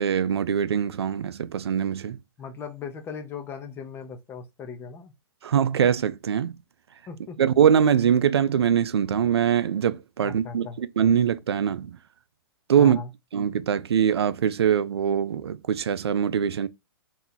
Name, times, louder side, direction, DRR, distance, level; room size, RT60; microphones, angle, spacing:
voice 1, 0.0-2.2 5.4-6.5 7.4-12.0 12.7-13.0 13.3-16.7, right 8 dB, 90° right, 0.4 m, -23 dB
voice 2, 2.4-5.1 7.1-7.4 10.2-10.8 12.8-13.1, left 5 dB, 15° left, 0.5 m, -38 dB
2.9 x 2.2 x 3.8 m
hypercardioid pair, 135°, 13 cm